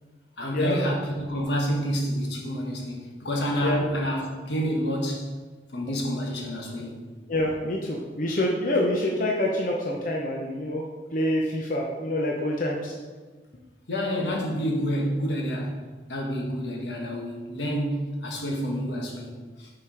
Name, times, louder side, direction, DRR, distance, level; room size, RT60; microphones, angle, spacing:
voice 1, 0.4-5.3 5.7-7.0 13.9-15.8 16.1-19.7, equal, 80° left, 0 dB, 1.3 m, -28 dB
voice 2, 7.3-10.8 11.1-12.9, left 1 dB, 50° left, -2 dB, 0.7 m, -26 dB
6.0 x 4.8 x 4.9 m, 1.3 s
head